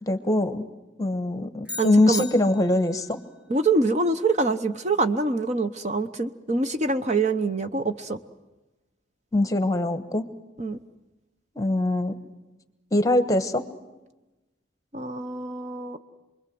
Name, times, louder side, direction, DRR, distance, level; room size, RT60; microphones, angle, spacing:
voice 1, 0.0-0.6 1.0-3.2 9.3-10.3 11.5-12.2 12.9-13.6, left 1 dB, 20° left, 10 dB, 1.2 m, -22 dB
sound 1, 1.7-3.1, left 4 dB, 5° right, 1.3 m, -37 dB
voice 2, 1.8-2.2 3.5-8.2 10.6-10.8 14.9-16.0, right 3 dB, 35° right, 9 dB, 0.9 m, -25 dB
28.0 x 22.0 x 7.8 m, 1.1 s
head